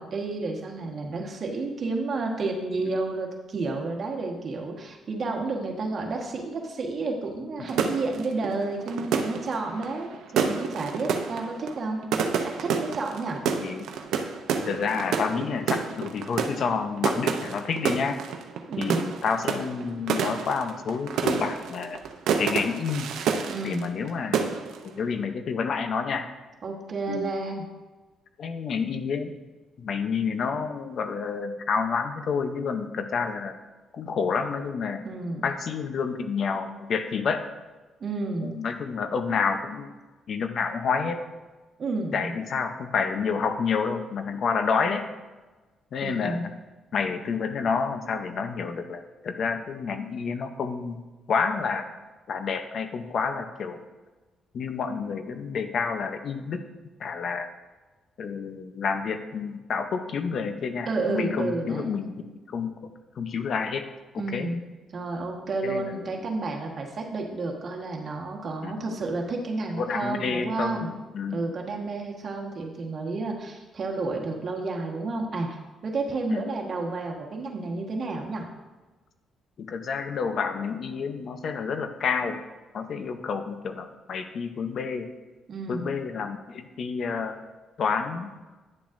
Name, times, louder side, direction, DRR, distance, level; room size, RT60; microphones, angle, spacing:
voice 1, 0.0-12.0 12.4-13.4 18.7-19.0 23.5-23.9 26.6-27.6 35.0-35.4 38.0-38.5 41.8-42.3 46.0-46.4 60.8-61.9 64.2-64.6 64.9-70.9 71.3-78.5 85.5-85.8, right 3 dB, 50° right, 1 dB, 1.3 m, -31 dB
voice 2, 7.6-7.9 13.6-13.9 14.6-18.2 18.8-22.0 22.4-23.1 23.6-24.5 25.0-26.2 27.1-27.3 28.4-29.4 29.8-33.5 33.9-35.0 35.4-37.4 38.4-39.9 40.3-41.2 42.1-45.0 45.9-46.5 46.9-51.8 52.3-53.8 54.5-56.6 57.0-57.5 58.2-63.8 64.1-64.5 65.6-66.2 68.6-68.9 69.8-71.6 76.3-76.4 79.6-82.4 82.7-85.1 85.7-87.4 87.8-88.3, left 5 dB, 60° left, 8 dB, 0.6 m, -29 dB
sound 1, 7.7-24.1 24.3-24.9, right 6 dB, 80° right, 0.6 m, -29 dB
9.8 x 7.1 x 2.6 m, 1.2 s
cardioid pair, 90°, 0 cm